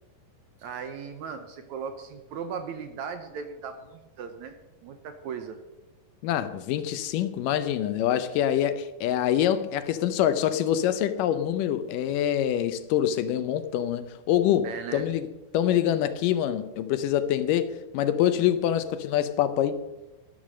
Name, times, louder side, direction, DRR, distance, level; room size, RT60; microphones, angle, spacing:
voice 1, 0.6-4.6 4.8-5.6 14.6-15.1, right 6 dB, 70° right, 1.9 m, -37 dB
voice 2, 6.2-15.3 15.5-19.8, left 10 dB, 75° left, 2.2 m, -25 dB
12.5 x 12.0 x 6.3 m
omnidirectional pair, 4.1 m